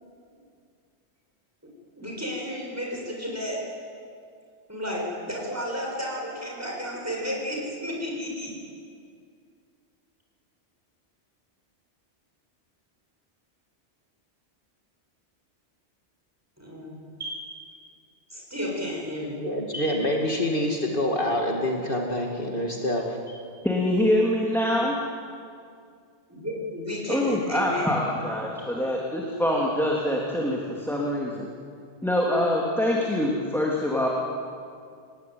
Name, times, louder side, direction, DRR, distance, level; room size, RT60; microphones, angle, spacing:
voice 1, 2.0-3.7 4.7-8.6 16.6-17.6 18.3-19.4 19.7-20.0 23.3-23.4 26.3-28.0, equal, 15° right, -2 dB, 7.1 m, -33 dB
voice 2, 19.4-23.2, left 1 dB, 50° left, 0 dB, 2.6 m, -26 dB
voice 3, 23.6-25.0 27.1-31.5 32.0-34.1, left 1 dB, ahead, -3 dB, 3.1 m, -25 dB
28.5 x 19.0 x 9.7 m, 2.3 s
omnidirectional pair, 1.2 m